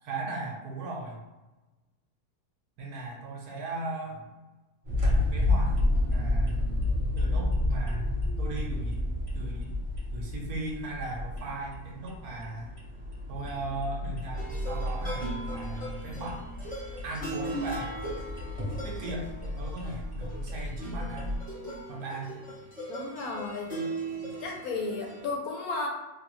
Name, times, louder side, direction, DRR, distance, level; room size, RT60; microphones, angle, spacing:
voice 1, 0.0-1.2 2.8-4.3 5.0-5.8 6.1-6.7 7.2-9.7 10.1-12.7 13.3-16.5 17.0-18.0 18.8-21.3 21.9-22.3 23.7-23.9 24.2-24.3, right 2 dB, 65° right, -2 dB, 1.2 m, -38 dB
sound 1, 4.8-21.4, left 2 dB, 30° right, 0.6 m, -31 dB
sound 2, 14.3-25.3, right 2 dB, 5° left, 0.7 m, -39 dB
voice 2, 22.9-23.7 24.4-25.9, left 3 dB, 70° left, 0 dB, 0.9 m, -33 dB
3.3 x 2.3 x 3.0 m, 1.1 s
omnidirectional pair, 1.8 m